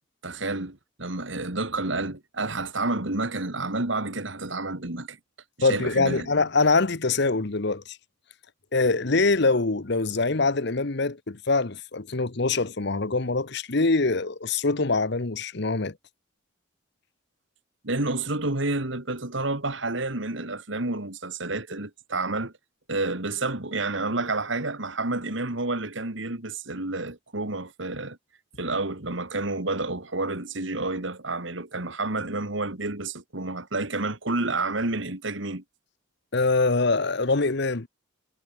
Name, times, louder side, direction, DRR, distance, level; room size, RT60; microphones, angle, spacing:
voice 1, 0.2-5.2 5.6-6.3 17.8-22.5 22.9-28.2 28.6-35.6, right 2 dB, 65° right, 2.6 m, -29 dB
voice 2, 5.6-8.0 8.7-15.9 36.3-37.9, left 3 dB, 55° left, 1.1 m, -24 dB
head